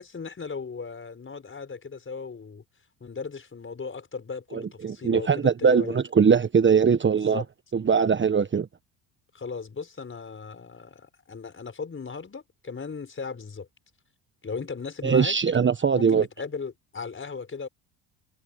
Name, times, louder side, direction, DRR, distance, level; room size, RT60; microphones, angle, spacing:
voice 1, 0.0-2.6 3.0-6.0 7.1-7.5 9.3-13.7 14.4-15.4 15.9-17.7, left 5 dB, 30° left, 5.5 m, -37 dB
voice 2, 4.5-7.4 7.7-8.7 15.0-16.3, right 6 dB, 25° right, 1.3 m, -21 dB
supercardioid pair, 75°, 42 cm